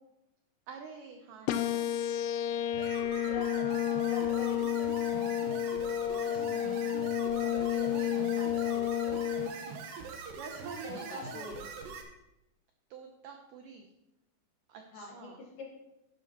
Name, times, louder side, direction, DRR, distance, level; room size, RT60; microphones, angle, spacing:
voice 1, 0.7-1.9 6.1-6.9 7.2-9.3 10.3-11.5 12.9-13.9 14.7-15.4, right 5 dB, 85° right, 4 dB, 1.8 m, -48 dB
sound 1, 1.5-9.5, left 10 dB, 80° left, 2.6 m, -31 dB
sound 2, 2.7-12.0, right 4 dB, 70° right, 2.6 m, -43 dB
voice 2, 4.1-4.7 10.8-11.6 14.9-15.3 15.6-15.7, left 4 dB, 60° left, -1 dB, 3.1 m, -43 dB
12.0 x 11.0 x 2.9 m, 0.91 s
omnidirectional pair, 4.8 m